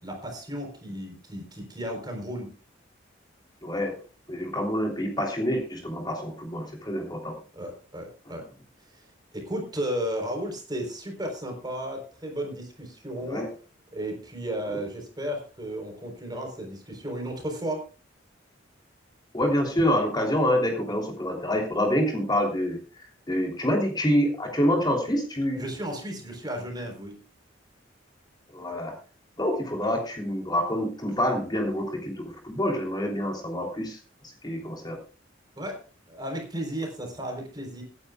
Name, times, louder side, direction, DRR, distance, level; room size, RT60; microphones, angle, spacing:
voice 1, 0.0-2.6 7.5-8.4 8.8-9.1 9.3-13.5 13.9-17.8 25.5-27.2 35.6-37.8, equal, 20° right, 3 dB, 3.9 m, -34 dB
voice 2, 3.6-4.0 4.3-7.4 13.3-13.5 14.7-14.8 19.3-22.8 23.3-25.6 28.5-29.0 29.4-34.0 34.4-35.0, equal, 20° left, 1 dB, 3.1 m, -27 dB
24.5 x 9.9 x 2.4 m, 0.34 s
head